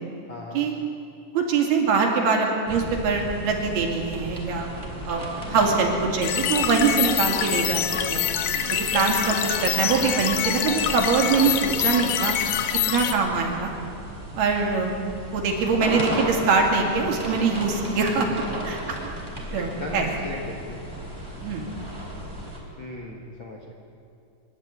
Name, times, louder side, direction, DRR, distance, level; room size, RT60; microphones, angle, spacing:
voice 1, 0.3-0.6 18.2-18.5 19.5-20.9 22.8-23.7, left 2 dB, 50° left, -1 dB, 1.5 m, -37 dB
voice 2, 1.3-4.7 5.1-8.3 8.7-12.3 12.9-13.7 14.4-14.9 15.3-18.3 18.6-19.1 19.5-20.1 21.4-21.7, right 4 dB, 70° right, 1 dB, 4.2 m, -23 dB
sound 1, 2.7-22.6, right 1 dB, 5° right, 3.0 m, -35 dB
sound 2, 6.2-13.1, left 10 dB, 70° left, 2.3 m, -25 dB
26.0 x 12.0 x 9.6 m, 2.4 s
omnidirectional pair, 4.8 m